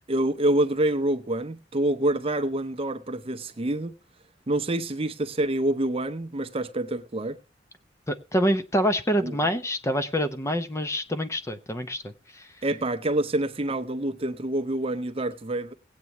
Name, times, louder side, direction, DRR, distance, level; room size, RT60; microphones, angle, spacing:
voice 1, 0.1-3.9 4.5-7.4 9.2-9.5 12.6-15.7, right 1 dB, 30° right, 0.7 m, -27 dB
voice 2, 8.1-12.5, equal, 15° left, 0.6 m, -26 dB
19.0 x 8.3 x 3.0 m
head